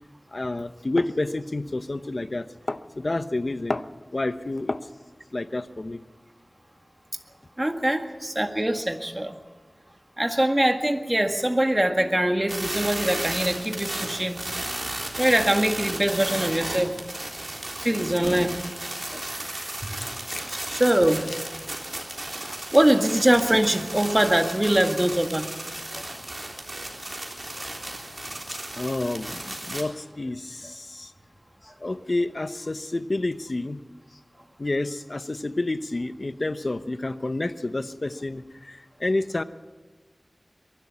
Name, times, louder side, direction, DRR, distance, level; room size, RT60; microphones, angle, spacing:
voice 1, 0.3-3.8 4.1-4.8 5.3-6.0 20.3-20.4 28.5-31.1 31.8-33.8 34.6-39.4, left 2 dB, 55° left, 12 dB, 0.9 m, -29 dB
voice 2, 7.6-9.4 10.2-14.4 15.2-17.0 17.8-18.6 18.9-19.5 19.8-20.1 20.4-21.5 21.9-22.0 22.4-25.5 25.9-26.0, right 1 dB, 20° right, 5 dB, 1.9 m, -23 dB
sound 1, 12.5-29.8, right 1 dB, 45° right, 3.6 m, -34 dB
23.0 x 11.5 x 9.8 m, 1.3 s
wide cardioid pair, 45°, 0 cm